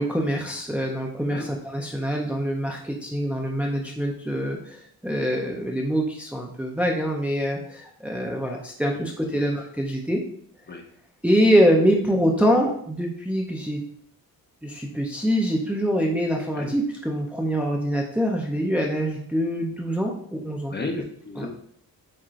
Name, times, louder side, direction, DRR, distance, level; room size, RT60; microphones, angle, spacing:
voice 1, 0.0-4.8 5.0-10.2 11.2-13.8 14.6-20.7 21.4-21.5, equal, 5° right, 0 dB, 0.6 m, -24 dB
voice 2, 20.7-21.5, left 3 dB, 30° left, 3 dB, 0.8 m, -33 dB
8.8 x 4.3 x 2.5 m, 0.62 s
wide cardioid pair, 165°, 37 cm